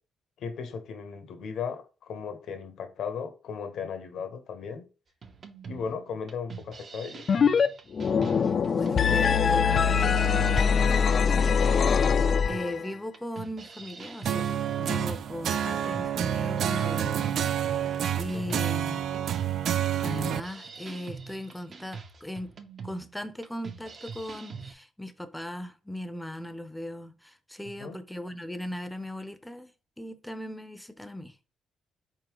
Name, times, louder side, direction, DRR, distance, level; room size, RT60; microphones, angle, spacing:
voice 1, 0.4-4.8 5.7-7.2 18.3-18.6 27.8-28.0, left 6 dB, 70° left, 0.8 m, -36 dB
sound 1, 5.2-24.7, right 5 dB, 45° right, 0.7 m, -44 dB
sound 2, 7.3-7.7 7.9-12.9, left 6 dB, 50° left, 0.3 m, -23 dB
voice 2, 8.3-17.3 17.8-19.0 20.0-22.5 22.8-29.7 30.0-31.5, left 1 dB, 5° left, 0.6 m, -38 dB
sound 3, 14.3-20.4, right 9 dB, 70° right, 0.3 m, -28 dB
4.1 x 3.7 x 3.0 m
cardioid pair, 90°, 0 cm